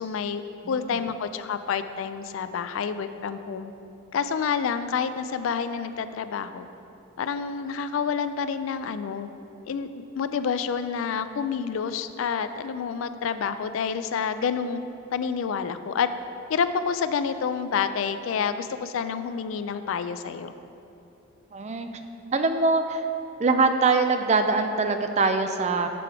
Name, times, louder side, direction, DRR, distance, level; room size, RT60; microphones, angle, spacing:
voice 1, 0.0-3.7 4.1-6.7 7.2-9.3 9.7-14.8 15.1-16.1 16.5-20.5, left 6 dB, 75° left, 11 dB, 0.3 m, -28 dB
voice 2, 0.6-1.0 21.5-21.9 22.3-23.1 23.4-25.9, right 3 dB, 35° right, 7 dB, 0.4 m, -23 dB
7.6 x 4.6 x 5.0 m, 2.7 s
head